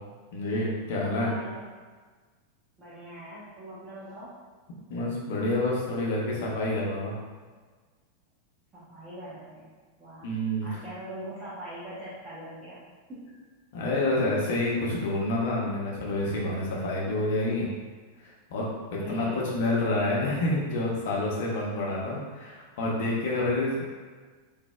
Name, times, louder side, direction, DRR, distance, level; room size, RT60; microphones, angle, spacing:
voice 1, 0.3-1.3 4.9-7.2 10.2-10.7 13.7-17.7 18.5-23.8, left 2 dB, 50° left, -4 dB, 0.8 m, -28 dB
voice 2, 1.1-1.6 2.8-4.3 8.7-9.7 10.0-10.3 10.6-12.8 13.1-13.2 19.0-19.5, right 1 dB, 20° right, -12 dB, 1.0 m, -42 dB
3.9 x 2.7 x 2.3 m, 1.4 s
figure-of-eight pair, 90°, 0 cm